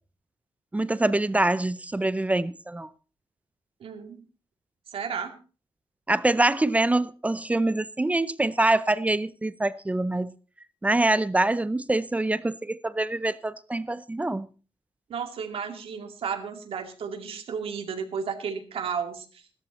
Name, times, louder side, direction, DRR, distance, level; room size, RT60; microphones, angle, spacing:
voice 1, 0.7-2.9 6.1-10.3 10.8-14.5, right 2 dB, 15° right, 0.6 m, -25 dB
voice 2, 3.8-4.2 4.9-5.3 15.1-19.4, right 6 dB, 85° right, 2.4 m, -33 dB
15.5 x 13.0 x 4.2 m
wide cardioid pair, 135°, 9 cm